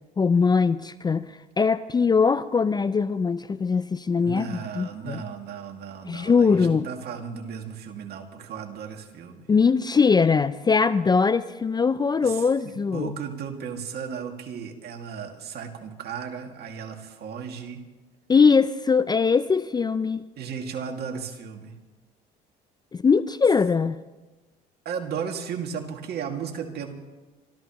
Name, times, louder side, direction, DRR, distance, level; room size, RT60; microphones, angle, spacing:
voice 1, 0.2-5.2 6.1-6.9 9.5-13.1 18.3-20.2 22.9-24.0, left 5 dB, 20° left, 0.4 m, -21 dB
voice 2, 4.2-9.5 12.2-12.4 12.9-17.8 20.4-21.7 24.9-26.9, right 7 dB, 55° right, 2.2 m, -35 dB
25.5 x 13.5 x 3.0 m
supercardioid pair, 80°, 19 cm